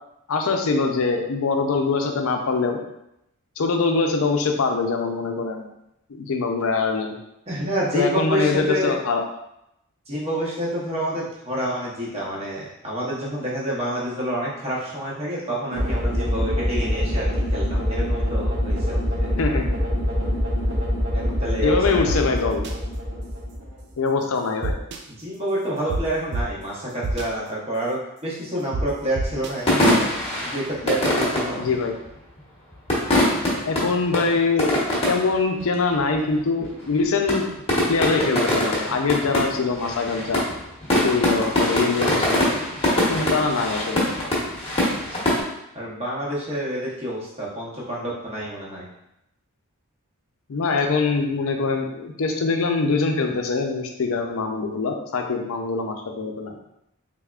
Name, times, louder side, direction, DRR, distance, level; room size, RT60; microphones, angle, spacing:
voice 1, 0.3-2.8 3.6-5.7 6.1-7.1 7.9-9.2 19.4-19.9 21.6-22.6 24.0-24.8 31.6-31.9 33.6-37.5 37.9-40.4 41.0-42.4 43.1-44.0 50.5-56.5, left 4 dB, 70° left, 4 dB, 0.5 m, -23 dB
voice 2, 7.5-9.0 10.1-19.3 21.1-22.2 25.1-29.9 30.4-31.7 45.1-45.2 45.7-48.9, right 1 dB, 30° right, -6 dB, 0.9 m, -28 dB
sound 1, 15.7-23.9, equal, 75° right, 1.3 m, -24 dB
sound 2, 22.1-22.2 22.6-22.7 24.6-25.0 25.9-26.0 26.3-26.4 27.0-27.2 28.7-28.8 29.1-29.5, right 3 dB, 50° right, 0.4 m, -26 dB
sound 3, 29.6-32.1 32.7-35.3 35.6-35.7 35.9-36.4 36.6-36.9 37.3-45.4, left 1 dB, 25° left, 1.0 m, -23 dB
3.5 x 3.4 x 2.4 m, 0.83 s
head